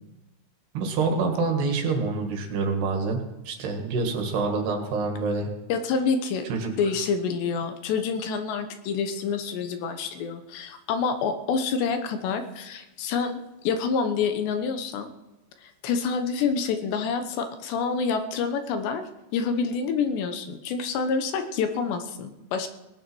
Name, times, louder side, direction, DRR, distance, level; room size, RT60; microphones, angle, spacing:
voice 1, 0.7-5.5 6.5-6.7, right 4 dB, 65° right, 3 dB, 3.8 m, -26 dB
voice 2, 5.7-6.5 6.8-15.1 15.6-22.7, left 5 dB, 75° left, 7 dB, 3.1 m, -27 dB
19.0 x 9.2 x 6.2 m, 0.99 s
omnidirectional pair, 5.2 m